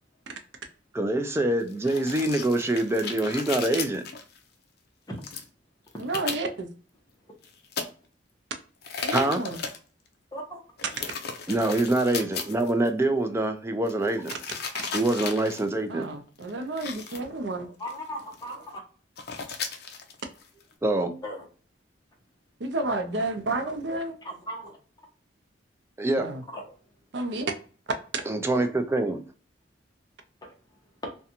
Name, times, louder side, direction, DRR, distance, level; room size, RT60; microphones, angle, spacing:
voice 1, 0.9-4.0 9.1-9.4 11.5-14.3 14.9-16.1 20.8-21.1 26.0-26.3 28.3-29.2, right 2 dB, 15° right, 0.3 m, -25 dB
sound 1, 1.7-4.4 5.2-5.4 5.9-6.4 7.4-7.8 8.8-9.8 10.8-12.9 13.9-15.7 16.3-16.5 16.8-17.2 17.9-18.0 18.2-18.7 19.2-20.7, left 5 dB, 55° left, 0.5 m, -35 dB
voice 2, 6.0-6.7 9.0-9.6 15.9-17.7 22.6-24.2 26.2-26.4 27.1-27.5, right 2 dB, 65° right, 0.5 m, -30 dB
voice 3, 17.8-18.8 21.2-21.4 24.5-24.8 26.5-26.6 28.5-28.6 31.0-31.1, equal, 20° left, 0.7 m, -36 dB
2.5 x 2.2 x 2.7 m
head